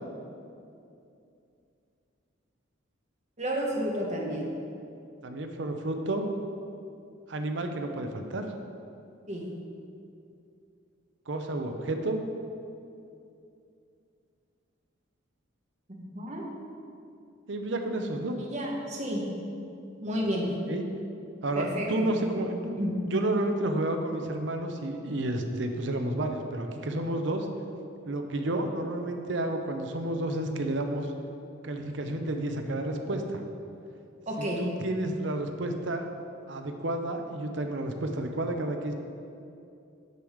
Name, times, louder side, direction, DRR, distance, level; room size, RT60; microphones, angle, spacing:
voice 1, 3.4-4.5 9.3-9.5 15.9-16.4 18.4-19.2 20.0-20.5 21.5-22.1 22.8-22.9 34.3-34.6, equal, 35° right, -2 dB, 1.2 m, -31 dB
voice 2, 5.2-6.3 7.3-8.4 11.3-12.2 17.5-18.3 20.7-20.8 21.4-22.7 23.1-27.5 28.1-31.1 31.6-33.4 34.6-36.1 36.5-38.9, right 1 dB, 65° right, 5 dB, 0.7 m, -31 dB
6.7 x 6.3 x 4.9 m, 2.6 s
head